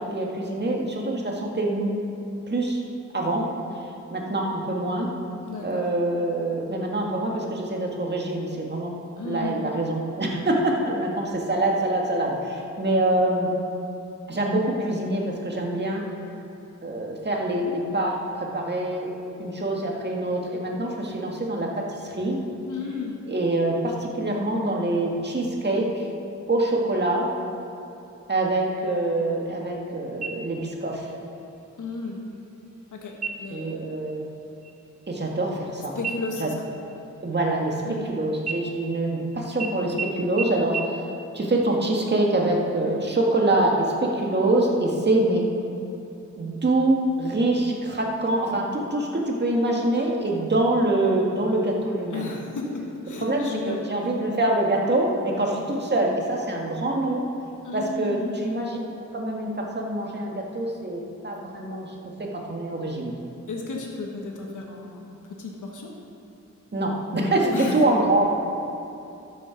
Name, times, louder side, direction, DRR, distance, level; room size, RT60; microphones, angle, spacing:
voice 1, 0.0-1.9 2.5-2.8 3.1-3.5 4.1-5.1 5.6-8.9 9.2-13.5 14.3-16.1 16.8-19.1 19.4-22.4 23.3-26.1 26.5-27.3 28.3-31.1 33.5-34.2 35.1-36.0 36.4-36.5 37.2-37.8 38.1-41.0 41.3-45.4 46.4-52.3 53.2-57.3 57.7-58.8 59.1-63.1 66.7-68.3, right 2 dB, 35° right, -1 dB, 1.8 m, -25 dB
voice 2, 5.4-5.9 9.2-9.7 22.7-23.2 31.8-32.2 32.9-33.9 35.9-36.7 37.8-38.0 52.1-53.8 57.6-58.5 63.5-65.9 67.5-67.8, left 3 dB, 80° left, -1 dB, 1.4 m, -34 dB
sound 1, 30.2-30.9 31.3-31.4 31.9-32.4 33.1-33.7 34.1-34.3 34.6-35.7 36.0-38.0 38.4-39.2 39.6-39.7 40.0-40.1 40.4-40.5 40.7-40.8, right 5 dB, 60° right, 0.9 m, -34 dB
13.0 x 7.5 x 5.2 m, 2.8 s
wide cardioid pair, 80°, 30 cm